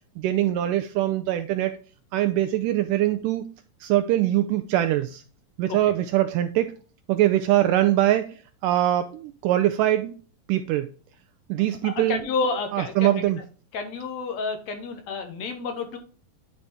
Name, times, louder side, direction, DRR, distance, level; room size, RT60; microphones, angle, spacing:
voice 1, 0.2-1.7 2.1-3.5 3.8-5.2 5.6-6.7 7.1-10.2 10.5-10.9 11.5-12.2 12.7-13.4, right 13 dB, 80° right, 9 dB, 2.0 m, -23 dB
voice 2, 11.8-13.2 13.7-16.0, left 4 dB, 65° left, 6 dB, 2.0 m, -30 dB
10.0 x 4.0 x 3.5 m, 0.38 s
omnidirectional pair, 3.9 m